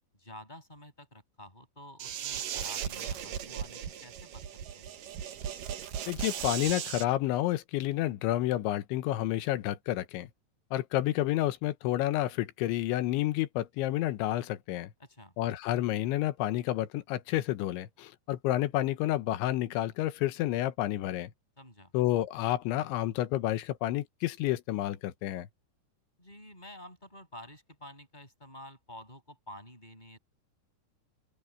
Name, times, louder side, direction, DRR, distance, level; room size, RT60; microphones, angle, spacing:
voice 1, 0.1-4.4 4.7-4.9 15.0-15.3 21.6-21.9 26.2-30.2, left 1 dB, 10° left, 7.9 m, -50 dB
sound 1, 2.0-7.0, right 9 dB, 60° right, 2.5 m, -37 dB
voice 2, 6.1-10.3 10.7-14.9 15.4-21.3 21.9-25.5, left 15 dB, 85° left, 3.4 m, -30 dB
open air
omnidirectional pair, 5.2 m